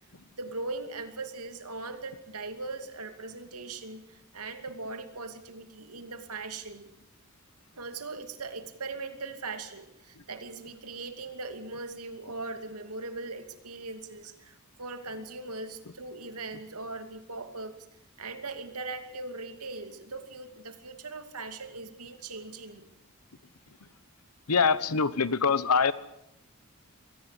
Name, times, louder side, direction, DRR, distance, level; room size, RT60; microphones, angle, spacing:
voice 1, 0.4-6.9 7.8-17.7 18.2-22.9, right 3 dB, 90° right, 8 dB, 2.6 m, -40 dB
voice 2, 24.5-25.9, left 5 dB, 90° left, 16 dB, 1.2 m, -24 dB
23.5 x 18.0 x 8.3 m, 0.80 s
head